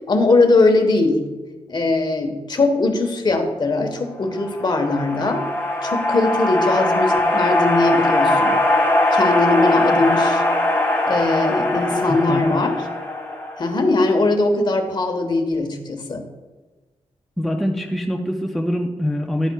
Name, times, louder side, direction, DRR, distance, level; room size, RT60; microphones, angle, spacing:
voice 1, 0.1-1.2 1.7-5.4 5.8-8.6 9.1-10.4 11.1-12.7 13.6-16.2, left 3 dB, 40° left, 5 dB, 1.1 m, -20 dB
sound 1, 4.3-13.9, left 1 dB, 15° left, 1.7 m, -20 dB
voice 2, 12.1-12.6 17.4-19.5, equal, ahead, 2 dB, 0.5 m, -24 dB
11.5 x 8.8 x 2.3 m, 1.2 s
wide cardioid pair, 125°, 11 cm